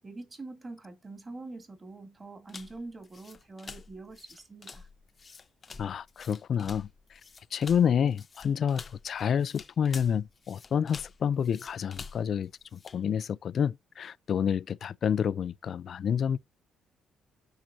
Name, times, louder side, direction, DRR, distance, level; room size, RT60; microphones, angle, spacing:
voice 1, 0.0-4.9, right 2 dB, 25° right, 2.8 m, -44 dB
sound 1, 2.5-13.0, left 5 dB, 35° left, 0.9 m, -47 dB
voice 2, 5.8-6.9 7.5-16.4, left 8 dB, 55° left, 0.4 m, -29 dB
8.9 x 5.8 x 2.8 m
cardioid pair, 100°, 0 cm